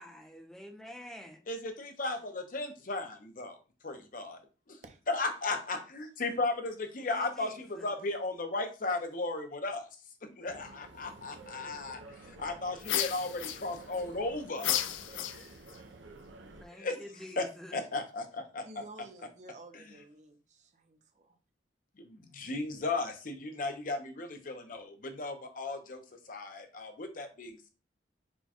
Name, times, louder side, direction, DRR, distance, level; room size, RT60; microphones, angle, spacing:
voice 1, 0.0-1.5 7.1-8.0 16.4-17.8, left 1 dB, 5° left, 0.6 m, -48 dB
voice 2, 1.5-3.6 3.8-4.4 4.7-4.8 5.1-9.9 10.2-14.8 16.7-17.0 17.4-17.5 17.7-18.8 19.7-19.8 22.0-27.7, left 2 dB, 45° left, 0.7 m, -36 dB
sound 1, 10.5-16.6, right 3 dB, 80° right, 0.6 m, -51 dB
sound 2, 12.8-14.0 14.6-15.8, left 11 dB, 90° left, 0.4 m, -33 dB
voice 3, 18.6-21.4, right 2 dB, 40° right, 0.6 m, -52 dB
4.4 x 2.3 x 4.3 m
head